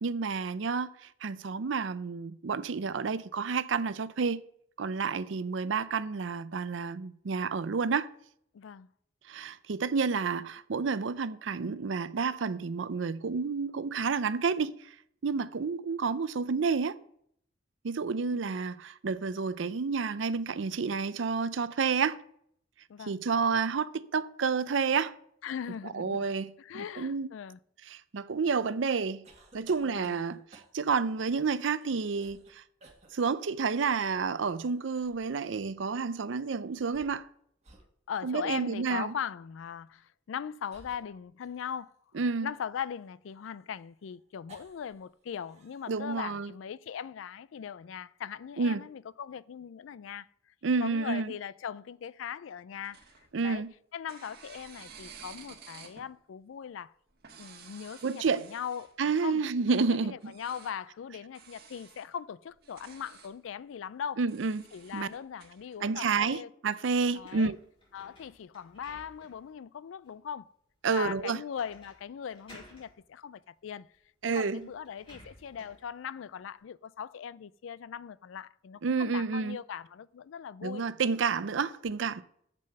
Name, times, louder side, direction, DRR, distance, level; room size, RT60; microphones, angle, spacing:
voice 1, 0.0-4.4 4.8-8.1 9.3-14.9 15.2-17.0 17.8-22.2 23.1-25.2 25.9-27.3 27.9-29.2 29.5-32.6 33.1-37.3 38.2-39.1 42.1-42.5 45.9-46.5 48.6-48.8 50.6-51.3 53.3-53.7 58.0-58.4 59.0-60.1 64.2-64.7 64.9-65.1 65.8-67.6 70.8-71.4 74.2-74.6 78.8-79.6 80.6-82.2, right 5 dB, 70° right, 0.5 m, -30 dB
voice 2, 8.5-8.9 18.2-18.5 22.9-23.2 25.4-26.2 26.6-27.6 29.8-30.2 38.1-41.9 42.4-50.3 50.8-53.0 53.4-53.6 53.9-56.9 57.4-58.9 59.2-59.4 59.9-64.2 64.7-66.5 67.1-67.5 67.9-70.5 70.9-73.9 74.2-80.8, left 8 dB, 75° left, 0.4 m, -40 dB
sound 1, 29.2-31.0 31.8-32.5 32.8-33.1 34.3-35.3 36.7-37.3 37.6-37.9 38.5-38.7 39.8-39.9 40.7-41.9 42.5-45.0 45.3-46.0, right 3 dB, 35° right, 1.9 m, -58 dB
sound 2, 52.7-53.7 54.1-56.1 57.1-59.1 60.2-60.8 61.3-62.1 62.5-63.3 64.3-65.8, right 6 dB, 55° right, 1.5 m, -52 dB
sound 3, 67.0-69.5 70.0-70.1 71.5-72.0 72.3-72.9 73.9-74.0 74.4-75.9, equal, 30° left, 4.7 m, -56 dB
7.6 x 7.4 x 6.5 m
head